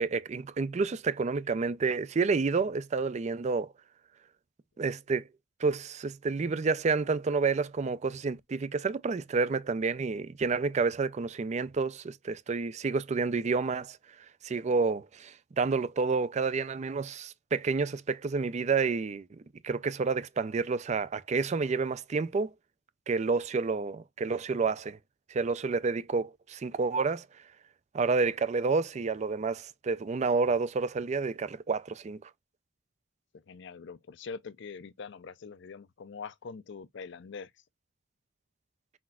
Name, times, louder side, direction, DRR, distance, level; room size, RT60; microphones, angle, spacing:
voice 1, 0.0-3.7 4.8-5.2 5.6-14.0 14.4-19.3 19.6-22.5 23.1-25.0 25.3-27.2 27.9-32.2, right 4 dB, 35° right, 0.4 m, -29 dB
voice 2, 33.5-37.5, left 5 dB, 65° left, 0.5 m, -43 dB
4.2 x 4.2 x 2.3 m
head